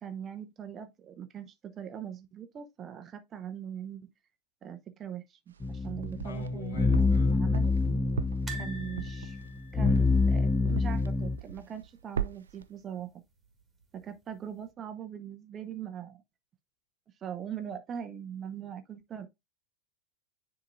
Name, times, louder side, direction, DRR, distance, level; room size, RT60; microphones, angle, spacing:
voice 1, 0.0-4.0 4.6-8.0 8.5-9.4 9.7-13.2 13.9-16.2 17.2-19.3, right 9 dB, 25° right, 0.7 m, -41 dB
sound 1, 5.5-6.5 6.9-11.1 11.4-11.9 12.1-12.6, right 8 dB, 70° right, 0.4 m, -38 dB
sound 2, 5.6-11.4, left 3 dB, 15° left, 0.6 m, -27 dB
voice 2, 6.2-7.5, left 3 dB, 65° left, 2.2 m, -40 dB
sound 3, 8.5-11.5 11.8-12.0 12.2-12.3 13.6-14.1 14.6-14.7, right 2 dB, 10° right, 1.9 m, -47 dB
10.0 x 3.7 x 2.5 m
figure-of-eight pair, 90°, 0 cm